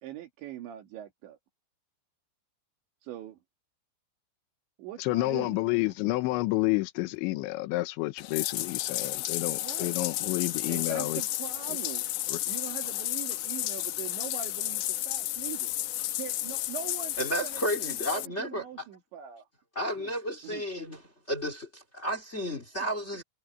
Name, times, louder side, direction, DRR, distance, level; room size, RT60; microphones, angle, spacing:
voice 1, 0.0-1.4 3.0-3.4 4.8-6.0 9.5-10.0 10.7-12.1 12.5-15.7 16.2-19.4 20.0-20.1 20.4-20.6, right 11 dB, 80° right, 4.7 m, -42 dB
voice 2, 5.0-11.2 12.3-12.4, left 20 dB, 90° left, 3.2 m, -29 dB
Bathtub (filling or washing), 8.2-18.3, left 15 dB, 75° left, 2.4 m, -32 dB
voice 3, 17.2-18.9 19.7-21.0 21.3-23.2, equal, 25° left, 1.7 m, -32 dB
omnidirectional pair, 5.2 m